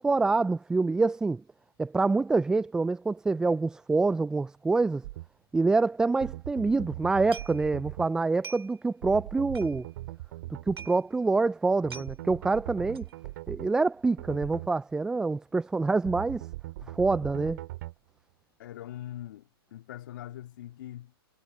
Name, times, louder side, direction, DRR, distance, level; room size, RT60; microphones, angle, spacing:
voice 1, 0.0-1.4 1.8-5.0 5.5-9.9 10.7-13.0 13.5-16.5 16.9-17.6, right 3 dB, 5° right, 0.4 m, -26 dB
sound 1, 5.0-5.3 6.2-8.1 9.0-10.9 11.8-13.7 14.2-14.7 16.0-17.9, right 17 dB, 45° right, 3.5 m, -40 dB
sound 2, 7.3-8.0 8.2-8.9 9.2-9.3 9.5-10.1 10.4-10.5 10.7-11.0 11.4-11.5 11.7-12.1 12.9-13.2 13.6-13.9 14.2-14.3, right 6 dB, 80° right, 4.7 m, -45 dB
voice 2, 18.6-21.1, left 12 dB, 55° left, 2.7 m, -42 dB
hypercardioid pair, 130°, 13 cm